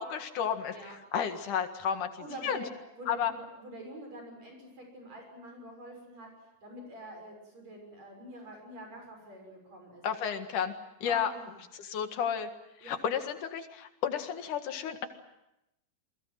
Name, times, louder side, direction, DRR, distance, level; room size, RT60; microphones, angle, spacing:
voice 1, 0.0-2.1 2.4-2.6 3.1-3.3 10.0-10.7 11.0-11.3 11.7-12.5 12.8-15.1, left 8 dB, 75° left, 7 dB, 3.3 m, -32 dB
voice 2, 2.2-2.7 3.0-6.3 6.6-10.0 11.0-11.5 12.8-13.0, right 1 dB, 55° right, 2 dB, 7.6 m, -46 dB
29.0 x 22.0 x 7.6 m, 0.89 s
omnidirectional pair, 3.7 m